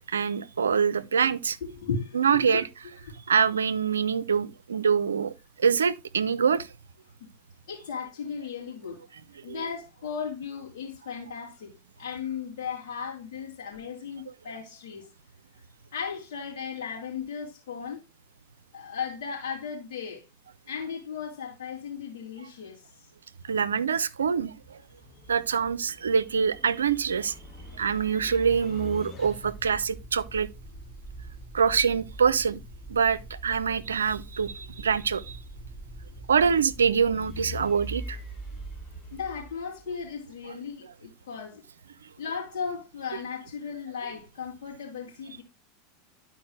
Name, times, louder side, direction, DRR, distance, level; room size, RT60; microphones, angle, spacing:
voice 1, 0.1-1.6 2.1-2.6 3.3-5.3 5.6-6.7 9.5-9.7 23.5-24.8 25.3-27.3 27.7-30.5 31.5-32.6 32.9-35.4 36.3-38.2, right 6 dB, 85° right, 0.5 m, -25 dB
voice 2, 1.7-2.6 3.0-3.1 7.2-7.3 7.7-9.0 9.4-11.7 12.0-15.1 15.9-18.0 18.7-20.2 20.7-22.8 39.1-41.6 42.2-45.4, left 6 dB, 65° left, 3.0 m, -36 dB
sound 1, 24.2-40.1, equal, 25° left, 1.8 m, -43 dB
11.5 x 4.5 x 3.2 m
hypercardioid pair, 85°, 0 cm